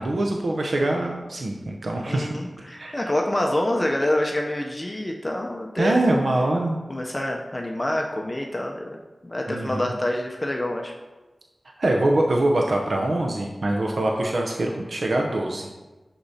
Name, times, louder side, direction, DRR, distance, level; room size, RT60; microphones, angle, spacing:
voice 1, 0.0-2.3 2.7-3.0 5.8-6.8 9.5-9.9 11.8-15.7, right 1 dB, 75° right, 1 dB, 0.6 m, -24 dB
voice 2, 2.1-6.0 6.9-10.9, left 1 dB, 30° left, 1 dB, 0.6 m, -27 dB
6.6 x 6.0 x 2.7 m, 1.2 s
wide cardioid pair, 60°, 0 cm